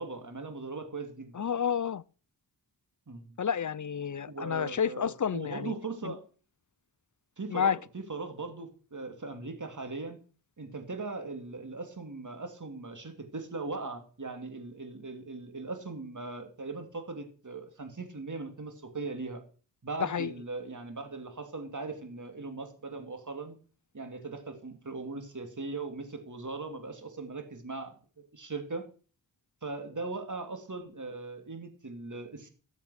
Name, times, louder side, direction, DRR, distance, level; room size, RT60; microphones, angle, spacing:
voice 1, 0.0-1.4 3.1-3.4 4.3-6.2 7.4-10.2 10.6-19.4 19.8-23.6 23.9-28.9 29.6-32.5, right 3 dB, 45° right, 2.8 m, -39 dB
voice 2, 1.3-2.0 3.4-5.7 6.0-6.1 7.5-7.8 20.0-20.3, left 7 dB, 45° left, 0.5 m, -30 dB
13.5 x 7.4 x 6.5 m
wide cardioid pair, 60°, 41 cm